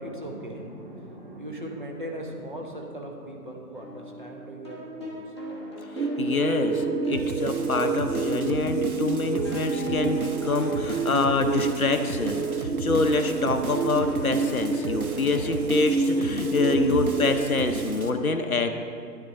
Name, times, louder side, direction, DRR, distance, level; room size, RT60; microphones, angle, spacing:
voice 1, 0.0-5.2 16.8-16.9, right 1 dB, 30° right, 1 dB, 0.9 m, -38 dB
sound 1, 3.7-9.0 9.3-17.0, equal, 15° left, 0.8 m, -40 dB
voice 2, 5.9-18.7, left 3 dB, 60° left, 7 dB, 0.8 m, -26 dB
sound 2, 6.0-17.8, right 4 dB, 75° right, 0.8 m, -28 dB
sound 3, 7.1-18.1, right 2 dB, 60° right, 1.0 m, -37 dB
10.5 x 10.5 x 3.8 m, 2.4 s
figure-of-eight pair, 150°, 49 cm